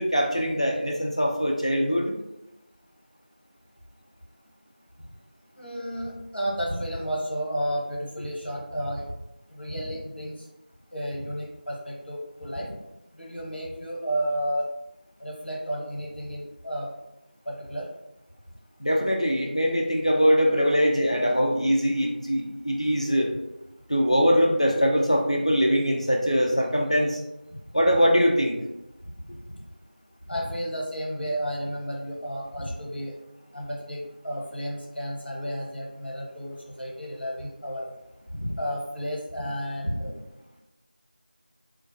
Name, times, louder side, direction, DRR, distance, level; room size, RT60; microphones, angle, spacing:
voice 1, 0.0-2.1 18.8-23.3 23.9-27.2 27.7-28.6, equal, 40° left, 0 dB, 0.4 m, -22 dB
voice 2, 5.5-9.1 9.5-10.5 10.9-12.8 13.1-14.7 15.2-16.9 17.4-17.9 27.5-27.6 29.2-29.3 30.3-33.2 33.5-37.9 38.3-40.1, equal, 85° left, -3 dB, 1.0 m, -32 dB
2.3 x 2.1 x 2.6 m, 0.92 s
figure-of-eight pair, 180°, 6 cm